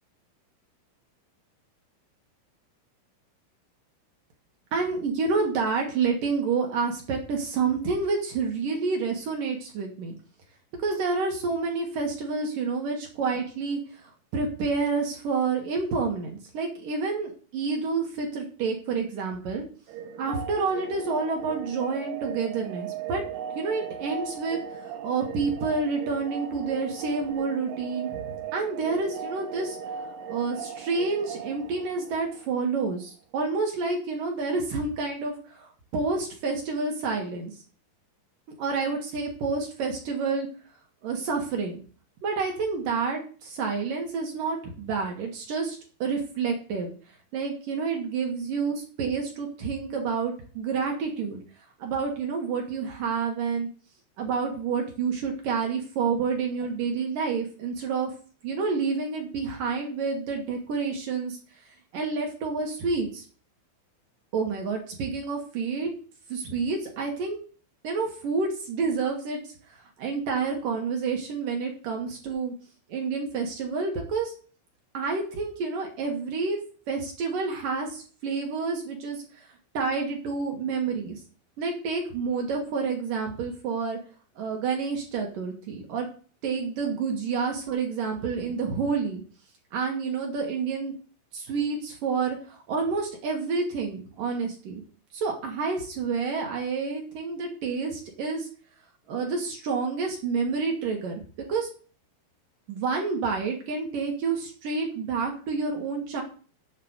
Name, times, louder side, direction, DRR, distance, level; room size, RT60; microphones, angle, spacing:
voice 1, 4.7-10.2 10.8-19.6 20.2-23.2 23.5-24.6 25.0-29.8 30.3-37.5 38.6-40.5 41.0-41.8 42.2-46.9 47.3-51.4 51.8-53.7 54.2-58.1 58.4-61.4 61.9-63.2 64.3-65.9 66.3-67.4 67.8-69.4 69.7-72.5 72.9-74.3 74.9-76.6 76.9-79.2 79.7-81.2 81.6-84.0 84.4-86.1 86.4-89.2 89.7-90.9 91.3-94.8 95.1-98.5 99.1-101.7 102.7-106.2, right 4 dB, 60° right, 1 dB, 2.6 m, -29 dB
sound 1, 19.9-32.7, right 8 dB, 80° right, 3.2 m, -38 dB
8.5 x 5.5 x 7.9 m, 0.40 s
omnidirectional pair, 5.7 m